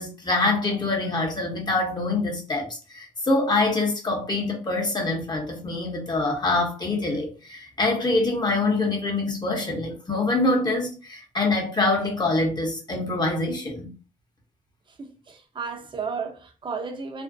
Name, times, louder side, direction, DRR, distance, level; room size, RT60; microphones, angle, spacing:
voice 1, 0.0-13.9, left 2 dB, 30° left, 0.8 m, -25 dB
voice 2, 15.0-17.2, right 5 dB, 35° right, 0.6 m, -33 dB
2.5 x 2.1 x 2.5 m
cardioid pair, 80°, 14 cm